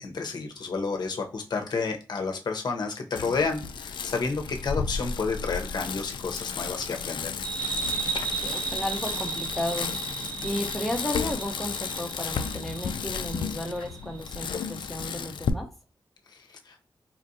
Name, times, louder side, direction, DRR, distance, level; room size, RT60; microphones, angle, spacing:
voice 1, 0.0-7.3 16.3-16.8, left 4 dB, 60° left, 3 dB, 0.8 m, -30 dB
Bicycle, 3.2-15.5, left 6 dB, 75° left, 0.4 m, -33 dB
sound 1, 7.4-14.6, right 5 dB, 70° right, 1.0 m, -35 dB
voice 2, 8.1-10.2 10.4-15.7, left 1 dB, ahead, 2 dB, 1.0 m, -34 dB
4.4 x 2.5 x 2.7 m, 0.35 s
cardioid pair, 75°, 8 cm